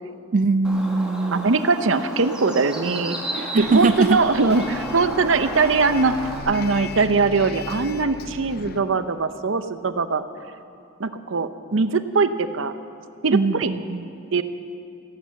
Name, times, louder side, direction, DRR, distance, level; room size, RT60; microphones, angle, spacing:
voice 1, 0.3-1.5 3.3-4.2 13.3-14.1, right 3 dB, 40° right, 10 dB, 0.3 m, -21 dB
Bird, 0.6-6.4, right 1 dB, 5° right, 1.9 m, -33 dB
voice 2, 1.3-3.2 3.5-10.2 11.0-12.7 13.2-13.7 14.3-14.4, right 4 dB, 75° right, 11 dB, 0.7 m, -21 dB
Bus, 3.6-8.8, left 3 dB, 50° left, 0.6 m, -37 dB
15.0 x 11.5 x 7.6 m, 2.5 s
head